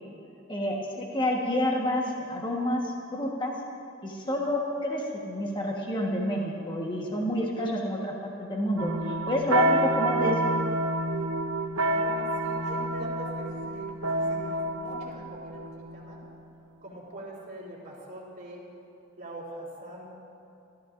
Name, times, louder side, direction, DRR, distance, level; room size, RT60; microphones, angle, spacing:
voice 1, 0.5-3.5 4.0-10.4, left 1 dB, 20° left, -2 dB, 1.4 m, -29 dB
sound 1, 8.8-16.3, right 1 dB, 80° right, 1.1 m, -28 dB
voice 2, 11.9-16.2 16.8-18.6 19.2-20.1, right 1 dB, 40° right, -5 dB, 3.7 m, -43 dB
29.5 x 13.5 x 2.6 m, 2.8 s
head